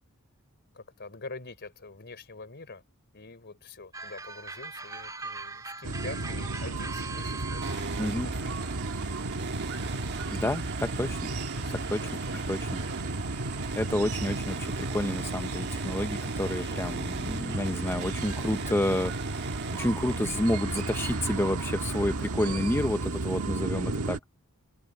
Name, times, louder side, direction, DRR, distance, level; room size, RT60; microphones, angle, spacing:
voice 1, 0.7-2.8 3.1-8.9 11.5-11.7 12.0-12.4 12.7-13.3 16.6-17.0 20.0-20.4 22.4-22.6, left 3 dB, 50° left, 3.7 m, -46 dB
sound 1, 3.9-7.8, right 3 dB, 15° right, 2.8 m, -40 dB
sound 2, 5.8-24.2, right 2 dB, 75° right, 1.4 m, -34 dB
sound 3, 7.6-23.6, right 4 dB, 50° right, 1.5 m, -39 dB
voice 2, 8.0-8.3 10.3-11.2 11.7-12.1 12.5-12.8 13.7-24.2, left 1 dB, 10° left, 0.6 m, -30 dB
head